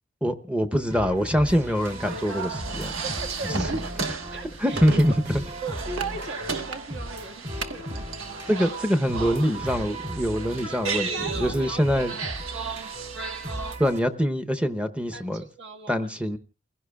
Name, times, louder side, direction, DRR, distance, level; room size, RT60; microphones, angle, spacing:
voice 1, 0.2-2.9 3.5-3.7 4.6-5.4 8.5-12.1 13.8-15.4 15.9-16.4, equal, 5° right, 0.7 m, -24 dB
sound 1, 0.9-14.0, right 1 dB, 35° right, 3.3 m, -37 dB
sound 2, 1.8-13.7, right 5 dB, 80° right, 1.3 m, -35 dB
voice 2, 3.0-3.9 4.3-8.0 8.6-8.7 10.7-12.1 15.1-16.1, right 3 dB, 60° right, 1.6 m, -38 dB
29.5 x 16.5 x 2.3 m
head